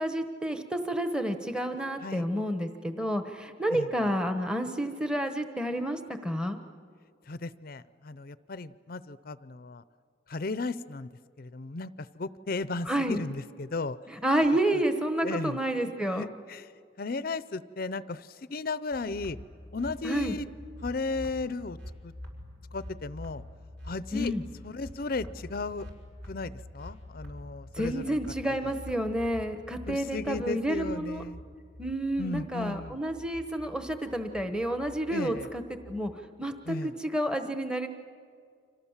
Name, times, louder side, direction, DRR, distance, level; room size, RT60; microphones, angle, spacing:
voice 1, 0.0-6.6 12.9-13.2 14.2-16.3 20.0-20.4 24.1-24.4 27.8-31.2 31.8-35.6 35.9-36.1 36.4-37.9, right 1 dB, 5° right, 7 dB, 1.1 m, -30 dB
voice 2, 3.7-4.1 7.3-9.8 10.3-11.1 11.4-14.0 15.2-15.6 16.0-16.7 17.0-19.4 19.7-20.5 20.8-21.8 22.0-22.1 22.7-23.4 23.8-24.3 24.6-25.9 26.3-28.2 28.6-28.7 29.9-31.4 32.2-33.0 35.1-35.5 36.7-36.9, left 3 dB, 50° left, 15 dB, 0.6 m, -35 dB
sound 1, 18.9-36.1, left 1 dB, 60° right, 5.6 m, -46 dB
30.0 x 26.0 x 7.3 m, 2.2 s
head